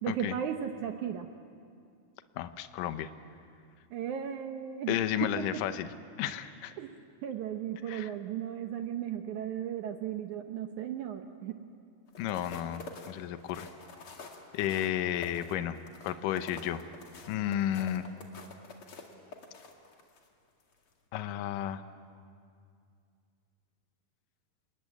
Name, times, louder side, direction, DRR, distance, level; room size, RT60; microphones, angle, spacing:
voice 1, 0.0-1.3 3.9-5.4 6.8-7.0 7.2-11.6, right 9 dB, 75° right, 6 dB, 1.8 m, -36 dB
voice 2, 2.4-3.1 4.9-5.9 6.2-6.7 7.9-8.1 12.2-13.7 14.5-15.8 16.0-16.8 17.3-18.1 21.1-21.8, left 11 dB, 75° left, 10 dB, 2.2 m, -32 dB
sound 1, 12.1-20.3 20.7-20.9, left 3 dB, 40° left, 2.5 m, -48 dB
27.0 x 21.0 x 9.3 m, 2.3 s
omnidirectional pair, 4.5 m